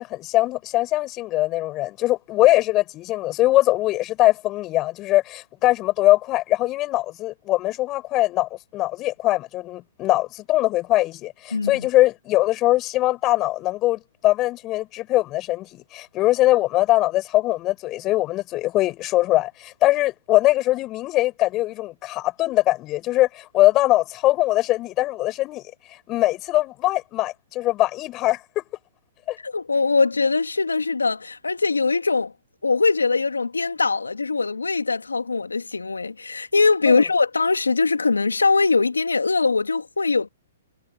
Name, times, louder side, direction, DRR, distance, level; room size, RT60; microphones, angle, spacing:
voice 1, 0.0-25.6 26.1-28.6 29.3-29.4 36.9-37.0, left 17 dB, 30° left, 7.2 m, -22 dB
voice 2, 11.5-11.9 29.4-32.3 32.6-40.3, left 4 dB, 90° left, 2.6 m, -21 dB
hypercardioid pair, 125°, 0 cm